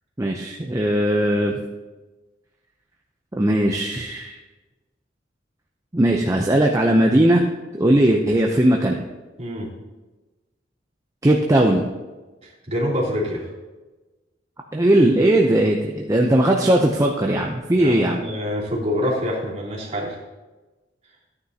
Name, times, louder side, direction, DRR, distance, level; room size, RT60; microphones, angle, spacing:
voice 1, 0.2-1.5 3.4-4.3 5.9-7.4 7.7-9.0 11.2-11.8 14.7-18.2, right 1 dB, 20° right, 1 dB, 0.6 m, -18 dB
voice 2, 9.4-9.7 12.4-13.5 17.8-20.2, left 1 dB, 35° right, -6 dB, 3.0 m, -26 dB
14.0 x 9.6 x 2.8 m, 1.2 s
head